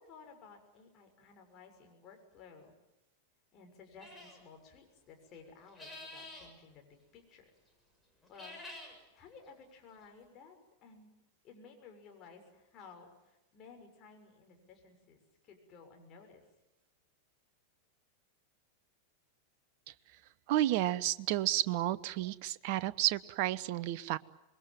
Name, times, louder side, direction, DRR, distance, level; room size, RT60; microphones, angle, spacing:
voice 1, 0.1-2.7 3.5-7.5 8.3-8.6 9.1-10.6 10.8-11.1 11.4-16.4, left 5 dB, 35° left, 3 dB, 6.7 m, -56 dB
sound 1, 4.0-4.4 5.6-6.5 8.2-8.9, left 1 dB, 10° left, 7.0 m, -48 dB
voice 2, 20.5-24.2, right 14 dB, 45° right, 17 dB, 0.9 m, -31 dB
27.0 x 22.0 x 9.3 m, 0.94 s
figure-of-eight pair, 90°, 0 cm